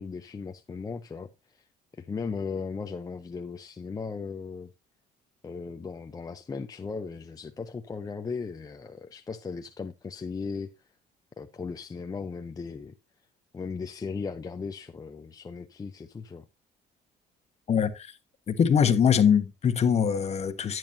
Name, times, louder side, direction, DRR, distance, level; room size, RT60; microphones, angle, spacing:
voice 1, 0.0-1.7 1.9-4.7 5.4-10.7 11.4-12.9 13.5-16.5, left 5 dB, 20° left, 0.6 m, -37 dB
voice 2, 17.7-18.1 18.5-20.8, left 7 dB, 40° left, 1.2 m, -23 dB
11.5 x 9.1 x 2.7 m
cardioid pair, 110°, 17 cm